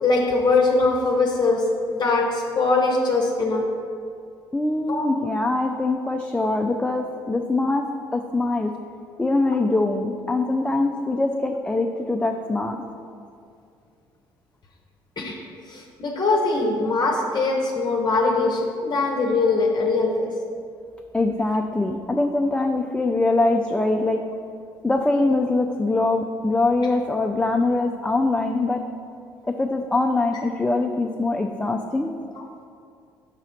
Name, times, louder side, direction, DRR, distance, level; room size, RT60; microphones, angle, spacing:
voice 1, 0.0-3.6 4.9-5.1 15.2-15.4 15.7-20.3, left 3 dB, 40° left, 0 dB, 0.8 m, -22 dB
voice 2, 4.5-7.8 8.1-8.7 9.2-12.8 21.1-24.2 24.8-28.8 29.6-32.1, left 2 dB, 10° left, 3 dB, 0.4 m, -23 dB
4.9 x 4.1 x 5.6 m, 2.4 s
hypercardioid pair, 55°, 12 cm